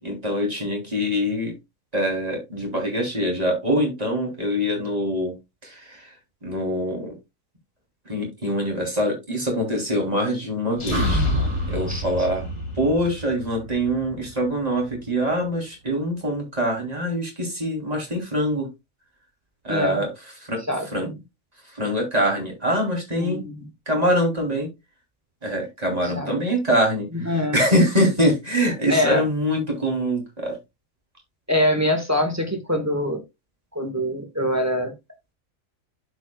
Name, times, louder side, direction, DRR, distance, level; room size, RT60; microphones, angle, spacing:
voice 1, 0.0-1.6 1.9-5.3 5.6-6.1 6.4-7.1 8.0-11.2 11.7-12.5 12.7-18.7 19.6-20.1 20.4-20.6 20.9-21.1 21.6-23.4 23.9-24.7 25.4-30.6, equal, 30° right, 3.1 m, -24 dB
sound 1, 10.7-12.8, left 1 dB, 55° left, 1.8 m, -30 dB
sound 2, 10.9-15.1, equal, 80° right, 1.8 m, -29 dB
voice 2, 19.7-20.0 20.7-21.1 23.2-23.6 26.2-26.3 27.1-27.6 28.9-29.3 31.5-33.2 33.7-34.9, left 1 dB, 10° right, 1.3 m, -24 dB
12.0 x 5.2 x 2.2 m
omnidirectional pair, 1.4 m